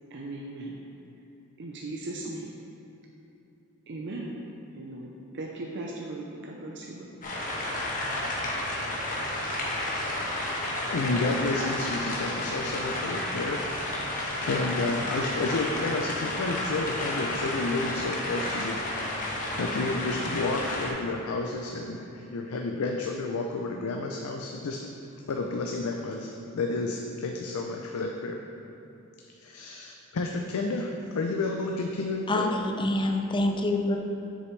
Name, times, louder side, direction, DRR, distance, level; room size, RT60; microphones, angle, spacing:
voice 1, 0.1-0.8 1.6-2.5 3.9-4.3 4.8-7.2, right 2 dB, 55° right, -1 dB, 0.6 m, -38 dB
sound 1, 7.2-20.9, left 1 dB, 40° left, 1.2 m, -31 dB
voice 2, 10.7-13.7 14.0-18.8 19.1-24.8 25.3-28.4 29.4-32.5, left 3 dB, 80° left, 2 dB, 0.5 m, -31 dB
voice 3, 32.3-34.0, left 2 dB, 20° left, 4 dB, 0.5 m, -26 dB
7.7 x 6.5 x 3.2 m, 2.9 s
head